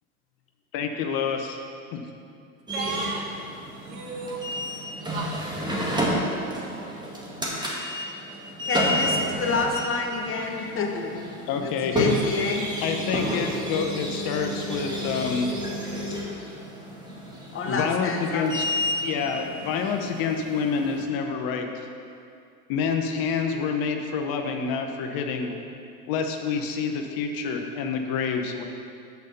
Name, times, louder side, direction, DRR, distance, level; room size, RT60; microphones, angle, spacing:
voice 1, 0.7-1.6 1.9-2.1 11.5-12.1 12.8-15.5 17.6-18.7 19.0-21.9 22.7-25.5 26.1-28.6, left 6 dB, 50° left, 4 dB, 0.9 m, -27 dB
sound 1, 2.7-21.0, equal, 10° right, 1.6 m, -30 dB
voice 2, 2.7-3.4 3.8-4.5 4.9-5.5, right 4 dB, 55° right, 2 dB, 1.3 m, -35 dB
voice 3, 8.6-12.7 17.5-18.5, left 4 dB, 30° left, 1 dB, 1.0 m, -28 dB
6.3 x 5.4 x 6.8 m, 2.4 s
hypercardioid pair, 105°, 45 cm